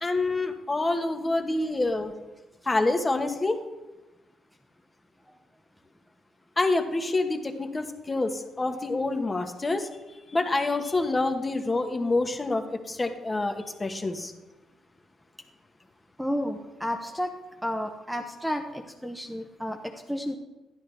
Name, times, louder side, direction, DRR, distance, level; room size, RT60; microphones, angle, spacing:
voice 1, 0.0-2.1 2.7-3.6 6.6-8.3 8.6-9.9 10.3-14.3, left 2 dB, 25° left, 5 dB, 1.1 m, -27 dB
voice 2, 16.2-17.3 17.6-20.3, equal, ahead, 4 dB, 0.8 m, -32 dB
11.0 x 11.0 x 3.3 m, 1.1 s
cardioid pair, 90°, 0 cm